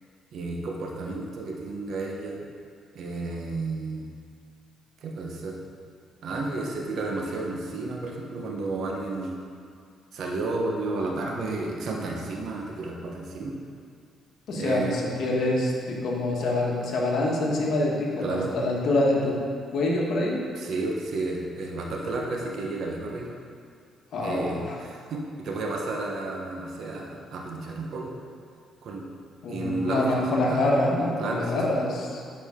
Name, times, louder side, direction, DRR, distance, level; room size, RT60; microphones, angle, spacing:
voice 1, 0.3-2.5 2.9-4.1 5.0-5.6 6.2-9.4 10.1-13.5 14.5-15.0 18.2-18.5 20.5-23.3 24.2-28.1 28.8-29.1 29.5-30.7 31.2-31.6, right 2 dB, 65° right, -1 dB, 1.1 m, -32 dB
voice 2, 14.5-19.4 19.7-20.4 24.1-24.8 29.4-32.2, left 2 dB, 70° left, -2 dB, 1.3 m, -25 dB
8.5 x 4.9 x 3.7 m, 2.2 s
cardioid pair, 90°, 0 cm